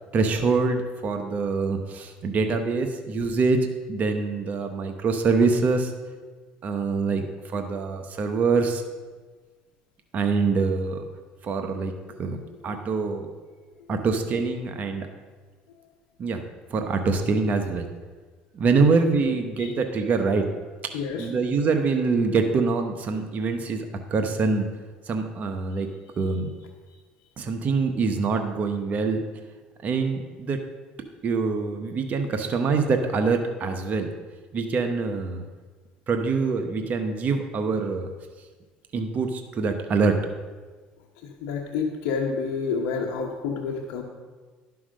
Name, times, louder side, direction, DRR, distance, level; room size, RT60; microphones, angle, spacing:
voice 1, 0.1-3.6 3.9-5.9 6.6-8.8 10.1-11.1 11.4-11.9 12.2-13.3 13.9-15.1 16.2-16.4 16.7-17.9 18.5-20.5 21.2-23.9 24.1-24.7 25.1-25.9 26.2-26.5 27.4-29.2 29.8-30.6 31.2-34.1 34.5-35.4 36.1-38.1 38.9-40.2, right 4 dB, 45° right, 6 dB, 1.0 m, -24 dB
voice 2, 19.3-19.7 20.9-21.3 41.4-44.0, left 5 dB, 80° left, 1 dB, 1.0 m, -29 dB
11.0 x 5.8 x 6.4 m, 1.4 s
supercardioid pair, 95°, 4 cm